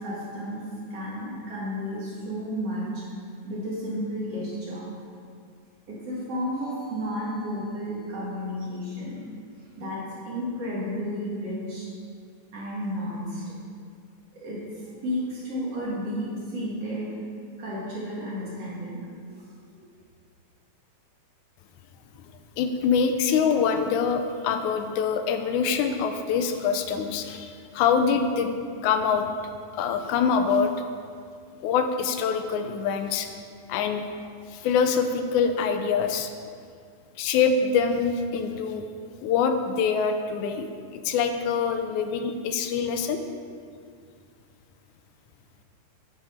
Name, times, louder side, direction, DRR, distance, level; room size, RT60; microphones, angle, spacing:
voice 1, 0.0-3.1 3.4-4.8 5.9-9.3 9.8-11.9 12.5-13.4 14.3-14.7 15.0-17.1 17.6-19.4 19.7-19.8, equal, 55° right, -7 dB, 2.6 m, -32 dB
voice 2, 22.6-29.3 29.7-30.7 31.6-33.3 33.7-34.0 34.5-36.3 37.2-38.8 39.2-43.2, left 6 dB, 85° left, 7 dB, 2.0 m, -25 dB
11.5 x 4.9 x 4.2 m, 2.2 s
omnidirectional pair, 3.4 m